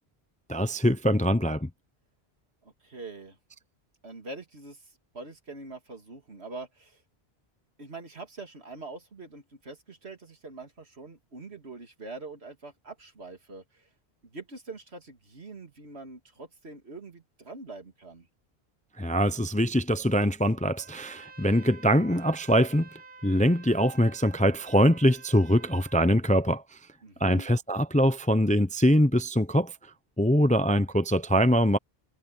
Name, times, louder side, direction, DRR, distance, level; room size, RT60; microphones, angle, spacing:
voice 1, 0.5-1.7 19.0-22.9 23.2-26.6 27.2-29.7 30.2-31.8, equal, 10° left, 0.5 m, -23 dB
voice 2, 2.6-3.4 4.0-7.0 7.8-13.9 14.2-18.3 27.0-27.5, right 3 dB, 80° right, 2.9 m, -44 dB
Trumpet, 20.7-26.2, right 5 dB, 50° right, 2.6 m, -50 dB
omnidirectional pair, 1.1 m